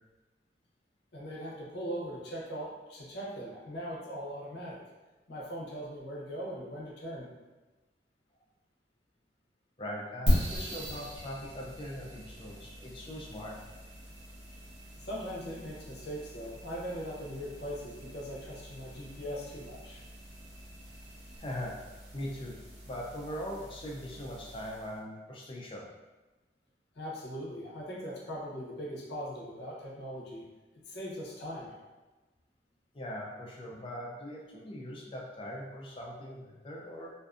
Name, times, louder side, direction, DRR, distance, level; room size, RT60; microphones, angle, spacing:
voice 1, 1.1-4.8 5.3-7.3 15.0-20.0 26.9-30.4 30.9-31.8, equal, 70° left, -4 dB, 0.6 m, -40 dB
voice 2, 9.8-13.6 21.4-21.8 22.1-22.6 22.9-25.9 32.9-37.1, equal, 30° left, -2 dB, 0.4 m, -41 dB
sound 1, 10.3-25.0, equal, 75° right, 0.8 m, -39 dB
2.5 x 2.3 x 2.4 m, 1.2 s
head